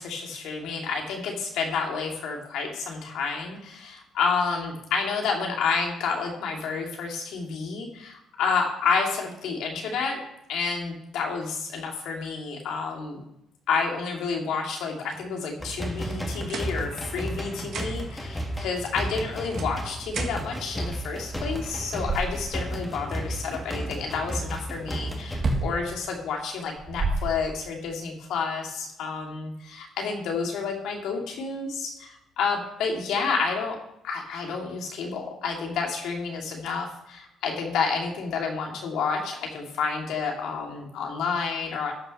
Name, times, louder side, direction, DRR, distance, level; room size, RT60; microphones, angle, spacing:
voice 1, 0.0-10.2 10.5-13.2 13.7-33.8 34.0-41.9, left 5 dB, 80° left, 1 dB, 2.5 m, -30 dB
sound 1, 15.6-25.4, equal, 10° left, 1.6 m, -33 dB
sound 2, 16.0-17.3 17.6-18.2 19.0-20.6, right 5 dB, 60° right, 1.6 m, -40 dB
sound 3, 21.7-22.8 25.3-25.8 26.6-27.8, right 2 dB, 30° right, 1.7 m, -29 dB
13.0 x 6.0 x 5.4 m, 0.80 s
cardioid pair, 130°, 0 cm